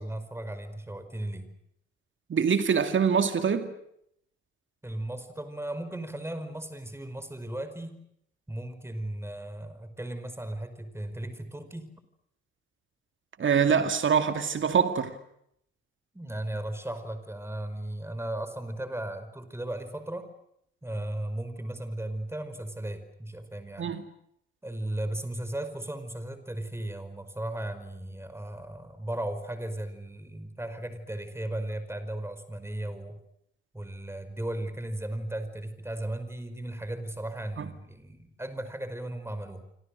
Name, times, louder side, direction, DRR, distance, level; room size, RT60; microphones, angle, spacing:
voice 1, 0.0-1.5 4.8-8.0 8.5-11.9 16.1-20.3 20.8-23.9 24.6-33.2 33.7-39.6, right 1 dB, 10° right, 4.9 m, -36 dB
voice 2, 2.3-3.7 13.4-15.1 23.8-24.0 37.6-37.7, right 6 dB, 35° right, 2.3 m, -24 dB
29.0 x 26.0 x 6.5 m
figure-of-eight pair, 45°, 33 cm